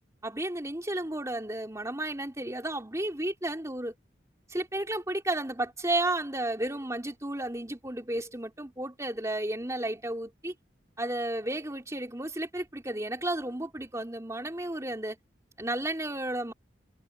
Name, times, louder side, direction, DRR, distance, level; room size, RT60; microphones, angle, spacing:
voice 1, 0.2-3.9 4.5-10.5 11.0-15.2 15.6-16.5, right 1 dB, 15° right, 3.4 m, -32 dB
head